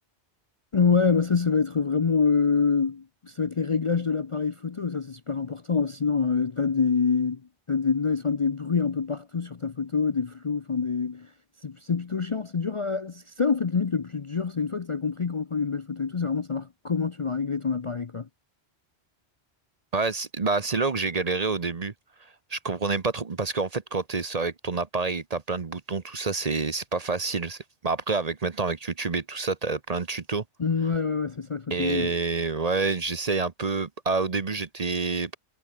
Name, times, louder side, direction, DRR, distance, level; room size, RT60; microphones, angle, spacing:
voice 1, 0.7-7.4 7.7-11.3 11.6-18.3 30.6-32.1, left 5 dB, 35° left, 0.6 m, -26 dB
voice 2, 19.9-21.9 22.5-30.4 31.7-35.4, right 4 dB, 35° right, 1.0 m, -28 dB
omnidirectional pair, 1.1 m